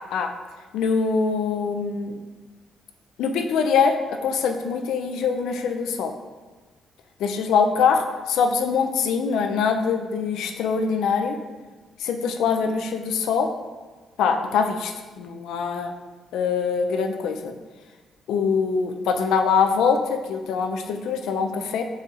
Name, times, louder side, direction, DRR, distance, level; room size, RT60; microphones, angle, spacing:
voice 1, 0.7-2.2 3.2-6.1 7.2-11.4 12.0-13.5 14.2-15.9 16.3-17.5 18.3-21.8, left 5 dB, 85° left, 5 dB, 0.3 m, -23 dB
4.1 x 2.4 x 3.9 m, 1.3 s
cardioid pair, 90°, 0 cm